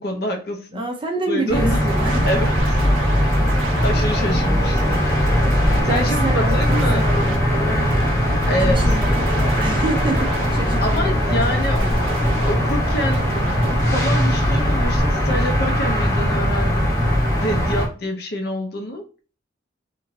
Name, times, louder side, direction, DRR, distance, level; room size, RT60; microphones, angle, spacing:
voice 1, 0.0-0.8 1.3-1.8 2.2-2.6 3.2-3.3 3.8-5.0 5.8-7.0 8.5-9.0 10.8-11.9 12.5-13.3 13.9-17.0 17.4-19.0, left 1 dB, 50° left, 5 dB, 0.5 m, -26 dB
voice 2, 0.7-2.3 3.0-3.6 5.8-7.9 8.7-12.1, right 1 dB, 25° right, 3 dB, 0.4 m, -29 dB
sound 1, 1.5-17.9, equal, 15° left, 0.8 m, -19 dB
sound 2, 1.7-15.6, right 4 dB, 85° right, 0.4 m, -34 dB
2.9 x 2.5 x 2.6 m, 0.36 s
head